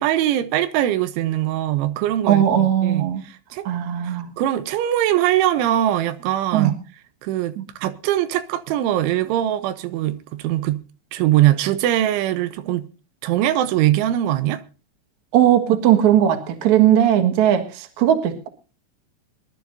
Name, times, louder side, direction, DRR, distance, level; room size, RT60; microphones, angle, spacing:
voice 1, 0.0-3.7 4.0-6.7 7.2-10.8 11.1-12.8 13.2-14.6, right 13 dB, 85° right, 3.3 m, -22 dB
voice 2, 2.3-3.2 3.7-4.3 6.5-6.7 7.6-7.7 15.3-18.5, right 10 dB, 60° right, 2.1 m, -18 dB
23.5 x 12.0 x 2.7 m
omnidirectional pair, 5.4 m